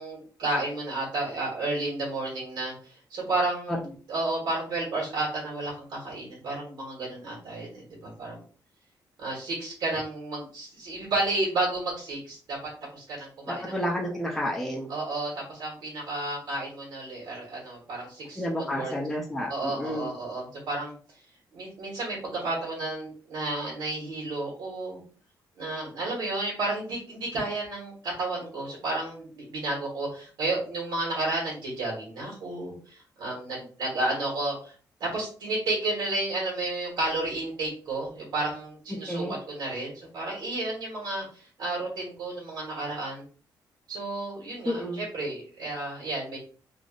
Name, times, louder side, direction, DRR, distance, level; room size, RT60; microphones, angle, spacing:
voice 1, 0.0-3.8 4.1-8.4 9.2-12.6 12.9-13.7 14.9-18.9 19.5-20.9 21.5-25.0 25.6-34.7 35.0-43.2 43.9-46.4, right 2 dB, 80° right, -4 dB, 1.4 m, -32 dB
voice 2, 13.7-14.9 18.4-20.1 39.1-39.4 44.6-45.0, equal, 5° left, -2 dB, 0.5 m, -30 dB
3.3 x 2.5 x 2.4 m, 0.42 s
wide cardioid pair, 145°, 7 cm